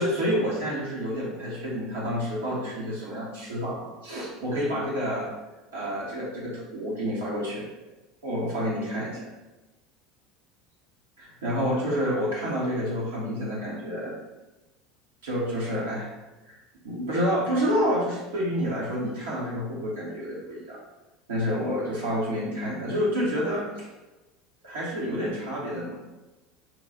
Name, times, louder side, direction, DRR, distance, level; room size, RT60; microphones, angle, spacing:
voice 1, 0.0-5.3 5.7-7.7 8.2-9.3 11.2-14.1 15.2-16.1 16.4-16.6 16.8-20.8 21.3-23.9 24.6-26.0, equal, 75° right, -6 dB, 1.0 m, -28 dB
3.0 x 2.3 x 3.9 m, 1.1 s
figure-of-eight pair, 70°, 0 cm